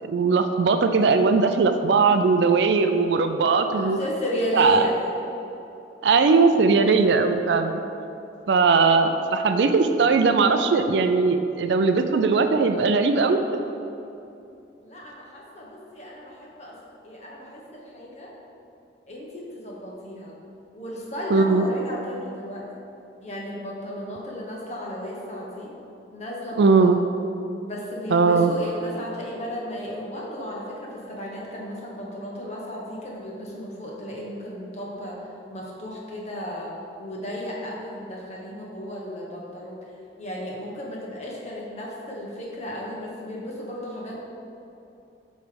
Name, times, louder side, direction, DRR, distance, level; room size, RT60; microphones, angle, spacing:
voice 1, 0.0-4.0 4.5-4.8 6.0-7.8 8.5-13.6 21.3-21.6 26.6-27.0 28.1-28.5, right 4 dB, 70° right, 7 dB, 0.4 m, -19 dB
voice 2, 3.7-5.2 14.8-16.8 17.0-18.3 19.1-20.3 20.7-22.7 23.2-25.7 26.1-26.9 27.6-36.7 37.0-39.8 40.2-44.2, equal, 40° left, -3 dB, 1.2 m, -34 dB
7.9 x 3.2 x 5.2 m, 2.8 s
head